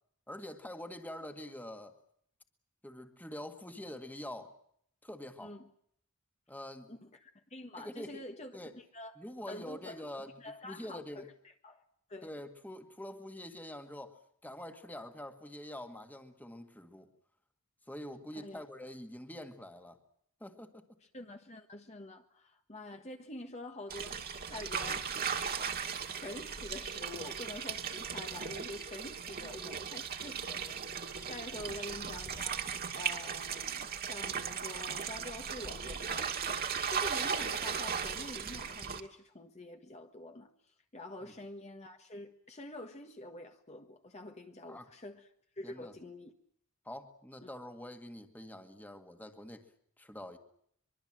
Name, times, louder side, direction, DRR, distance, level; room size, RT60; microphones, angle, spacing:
voice 1, 0.3-2.0 2.8-4.5 5.0-5.6 6.5-7.0 7.8-8.3 8.5-8.7 9.2-10.4 10.6-11.3 12.2-17.1 17.9-20.0 20.4-20.9 41.2-41.3 44.7-44.9 45.6-45.9 46.8-49.7 50.0-50.4, left 1 dB, 10° left, 1.9 m, -45 dB
voice 2, 6.9-9.2 9.5-11.8 12.1-12.3 18.3-18.6 21.1-24.1 24.5-25.2 26.1-32.6 32.9-40.5 40.9-45.3 45.6-46.3 47.4-47.5, left 1 dB, 30° left, 1.5 m, -47 dB
sound 1, 23.9-39.0, right 6 dB, 45° right, 2.1 m, -37 dB
24.0 x 23.0 x 7.6 m
head